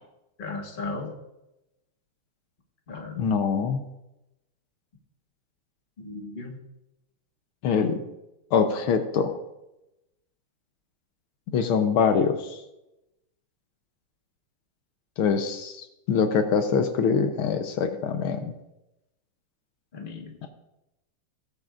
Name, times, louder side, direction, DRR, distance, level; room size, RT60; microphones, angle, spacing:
voice 1, 0.4-1.1 2.9-3.3 6.0-6.6 19.9-20.3, left 3 dB, 25° left, 1 dB, 1.5 m, -36 dB
voice 2, 3.2-3.9 7.6-8.0 8.5-9.4 11.5-12.6 15.2-18.4, left 6 dB, 75° left, 7 dB, 1.7 m, -24 dB
17.5 x 9.0 x 2.5 m, 0.92 s
omnidirectional pair, 2.4 m